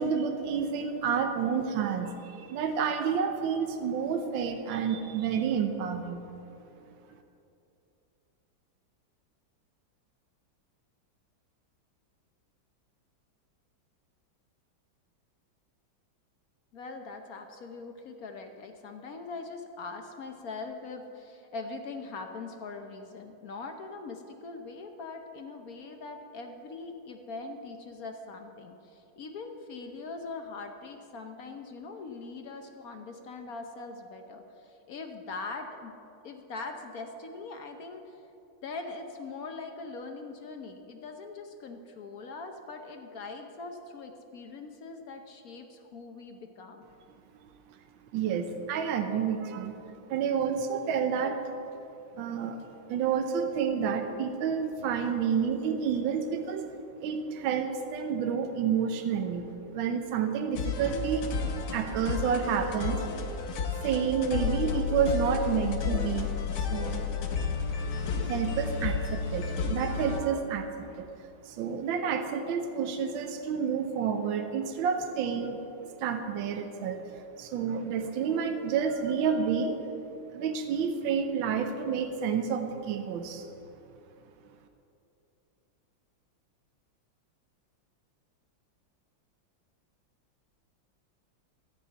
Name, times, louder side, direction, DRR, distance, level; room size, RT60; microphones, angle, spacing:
voice 1, 0.0-6.2 48.1-49.8 50.1-51.4 52.2-52.6 52.9-56.7 57.0-59.4 59.7-61.3 61.7-63.0 63.8-66.3 66.6-67.1 68.0-71.1 71.4-75.6 76.0-79.8 80.3-83.5, right 7 dB, 75° right, 6 dB, 1.5 m, -29 dB
voice 2, 16.7-36.0 36.2-38.2 38.6-46.9, left 3 dB, 60° left, 5 dB, 1.0 m, -42 dB
sound 1, 60.6-70.2, left 5 dB, 85° left, 1.8 m, -32 dB
14.0 x 5.6 x 8.8 m, 2.8 s
omnidirectional pair, 2.2 m